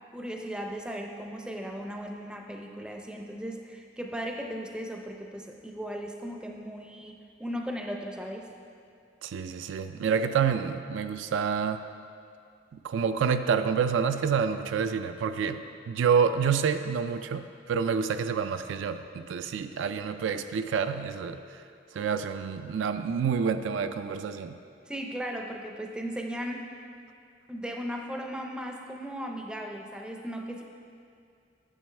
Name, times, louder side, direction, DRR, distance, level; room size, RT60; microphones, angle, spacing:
voice 1, 0.1-8.5 24.9-26.8 27.5-30.6, equal, 5° right, 2 dB, 0.4 m, -37 dB
voice 2, 9.2-11.8 12.7-21.4 21.9-24.5, right 6 dB, 80° right, 10 dB, 0.3 m, -28 dB
8.9 x 6.9 x 3.2 m, 2.4 s
head